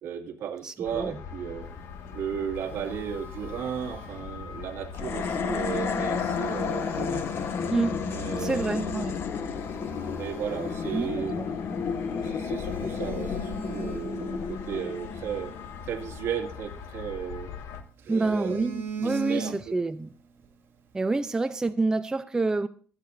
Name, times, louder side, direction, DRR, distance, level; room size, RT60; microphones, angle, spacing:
voice 1, 0.0-1.7 2.1-7.2 8.1-8.9 10.1-11.4 12.2-15.5 15.8-17.5 18.1-18.7 19.0-19.7, right 8 dB, 70° right, 2.2 m, -35 dB
voice 2, 0.6-1.2 7.7-7.9 8.4-9.1 10.9-11.5 18.1-20.1 20.9-22.7, right 3 dB, 15° right, 0.5 m, -28 dB
sound 1, 0.8-17.8, left 6 dB, 80° left, 1.8 m, -41 dB
Telephone, 2.1-4.6 5.9-7.8 8.4-8.6 9.1-9.2 9.6-11.6 11.9-12.0 12.5-14.9 16.4-17.4 17.8-19.9 20.2-20.5, right 4 dB, 50° right, 3.6 m, -42 dB
sound 2, 4.9-16.3, left 6 dB, 55° left, 1.5 m, -32 dB
25.5 x 8.6 x 2.6 m
cardioid pair, 140°, 5 cm